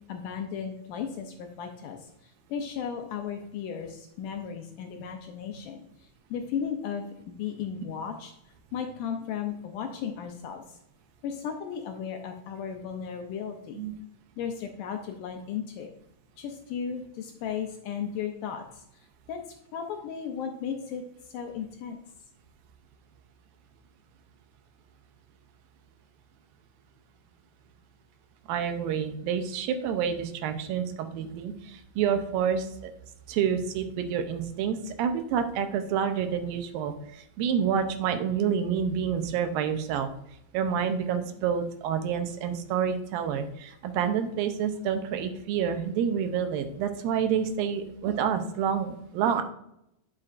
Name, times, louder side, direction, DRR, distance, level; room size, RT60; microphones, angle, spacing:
voice 1, 0.1-8.3 8.7-10.8 11.2-13.8 14.4-15.9 16.4-19.4 19.7-22.0, left 7 dB, 80° left, 4 dB, 2.0 m, -35 dB
voice 2, 28.5-32.9 33.3-40.1 40.5-49.4, right 7 dB, 80° right, 8 dB, 2.4 m, -28 dB
10.0 x 6.4 x 2.5 m, 0.79 s
omnidirectional pair, 4.3 m